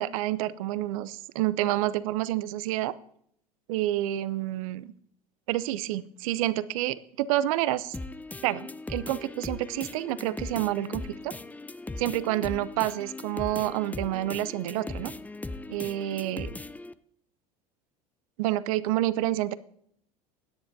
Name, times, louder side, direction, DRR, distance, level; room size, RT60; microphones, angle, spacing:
voice 1, 0.0-2.9 3.7-4.9 5.5-7.9 8.4-11.3 12.0-15.1 15.7-16.5 18.4-19.6, right 14 dB, 70° right, 16 dB, 0.7 m, -28 dB
sound 1, 7.9-16.9, left 2 dB, 10° left, 0.5 m, -39 dB
16.5 x 10.0 x 2.7 m, 0.66 s
hypercardioid pair, 80°, 19 cm